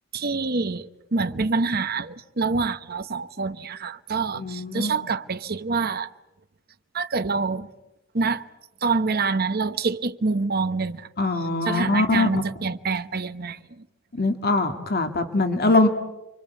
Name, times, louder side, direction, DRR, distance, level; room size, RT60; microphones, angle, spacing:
voice 1, 0.1-6.1 6.9-7.7 8.1-8.4 8.8-11.1 11.6-13.6, right 4 dB, 50° right, 1.0 m, -26 dB
voice 2, 4.4-5.0 11.2-12.3 14.2-15.9, left 2 dB, 50° left, 2.0 m, -22 dB
29.5 x 24.0 x 8.3 m
head